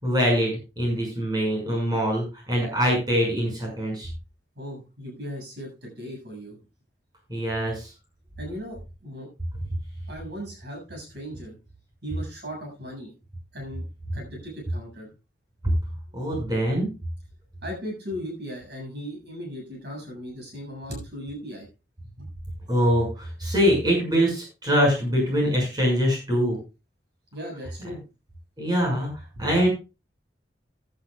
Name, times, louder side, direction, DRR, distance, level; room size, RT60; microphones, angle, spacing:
voice 1, 0.0-4.1 7.3-7.9 15.6-15.7 16.1-16.9 22.7-26.6 28.6-29.7, equal, 25° right, -1 dB, 6.0 m, -23 dB
voice 2, 4.6-6.6 8.4-9.3 10.1-11.5 12.0-13.1 13.5-13.8 14.1-15.1 17.6-21.7 22.2-22.3 27.3-28.0, equal, 65° right, 1 dB, 7.3 m, -37 dB
15.5 x 11.0 x 2.4 m, 0.28 s
head